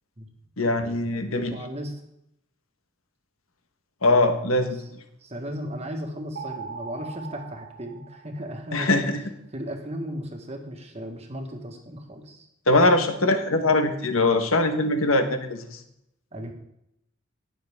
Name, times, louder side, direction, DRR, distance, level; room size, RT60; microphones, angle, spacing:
voice 1, 0.6-1.5 4.0-5.0 8.7-9.2 12.7-15.8, left 2 dB, 75° left, 7 dB, 1.4 m, -22 dB
voice 2, 1.1-1.9 5.2-9.1 9.5-12.5 16.3-16.5, equal, 30° right, 3 dB, 1.6 m, -36 dB
sound 1, 6.4-8.8, right 5 dB, 45° right, 1.0 m, -40 dB
18.0 x 6.7 x 3.6 m, 0.79 s
head